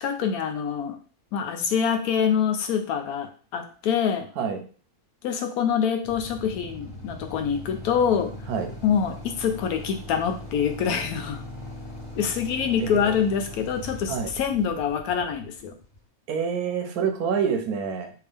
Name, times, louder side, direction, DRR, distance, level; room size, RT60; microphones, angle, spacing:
voice 1, 0.0-1.0 1.3-4.3 5.2-8.3 8.8-11.4 12.2-15.7, left 7 dB, 80° left, 6 dB, 1.1 m, -25 dB
Motorcycle / Idling, 6.0-16.0, left 1 dB, 20° left, 1.2 m, -40 dB
voice 2, 12.8-13.2 14.1-14.3 16.3-18.1, right 6 dB, 85° right, 6 dB, 1.2 m, -27 dB
3.5 x 2.7 x 3.4 m, 0.39 s
omnidirectional pair, 1.6 m